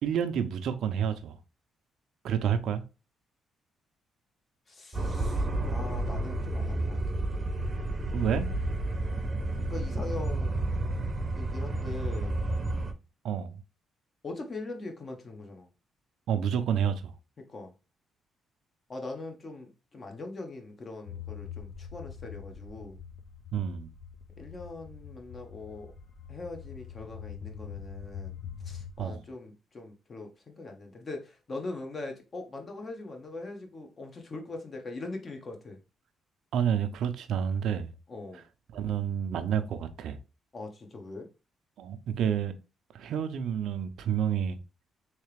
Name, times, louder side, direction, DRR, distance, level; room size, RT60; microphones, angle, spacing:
voice 1, 0.0-1.4 2.2-2.8 8.1-8.5 13.2-13.6 16.3-17.1 23.5-23.9 29.0-29.2 36.5-37.9 38.7-40.2 41.8-42.5 42.9-44.6, right 8 dB, 75° right, 0.5 m, -29 dB
voice 2, 4.7-7.2 9.7-10.6 11.4-12.4 14.2-15.7 17.4-17.7 18.9-23.0 24.4-25.9 26.3-35.8 38.1-38.4 40.5-41.3, left 2 dB, 40° left, 1.1 m, -41 dB
sound 1, 4.9-12.9, right 2 dB, 30° right, 0.7 m, -31 dB
sound 2, 21.1-29.0, left 8 dB, 60° left, 0.8 m, -44 dB
3.3 x 2.9 x 3.2 m
cardioid pair, 90°, 0 cm